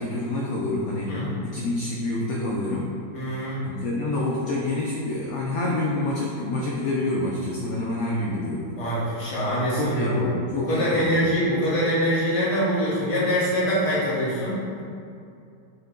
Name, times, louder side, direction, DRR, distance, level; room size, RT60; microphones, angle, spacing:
voice 1, 0.0-2.9 3.6-8.7 9.5-11.2, left 2 dB, 70° left, -4 dB, 0.8 m, -27 dB
voice 2, 3.1-3.6 8.8-14.8, equal, 25° left, -8 dB, 0.9 m, -24 dB
6.5 x 2.2 x 3.6 m, 2.5 s
omnidirectional pair, 2.0 m